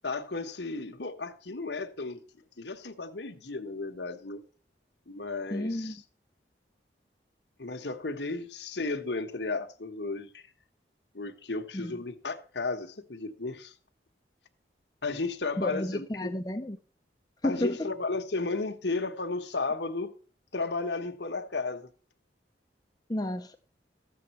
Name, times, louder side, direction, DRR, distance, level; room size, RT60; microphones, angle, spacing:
voice 1, 0.0-2.2 2.6-4.4 5.1-6.0 7.6-10.4 11.1-13.7 15.0-16.3 17.4-20.1 20.5-21.9, left 3 dB, 70° left, 1.4 m, -34 dB
voice 2, 5.5-6.0 11.7-11.9 15.6-16.8 17.4-17.9 23.1-23.6, left 1 dB, 20° left, 0.7 m, -31 dB
13.5 x 7.7 x 4.4 m
head